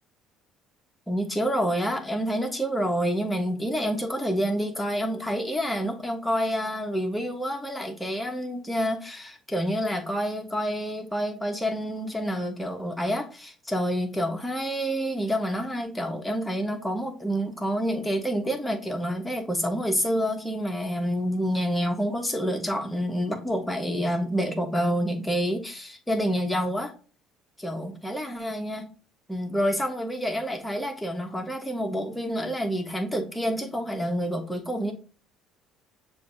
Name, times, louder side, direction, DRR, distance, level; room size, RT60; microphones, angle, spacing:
voice 1, 1.1-26.9 27.6-28.8 29.3-34.9, equal, 10° left, 4 dB, 1.1 m, -28 dB
6.6 x 2.7 x 2.5 m, 0.37 s
hypercardioid pair, 70°, 0 cm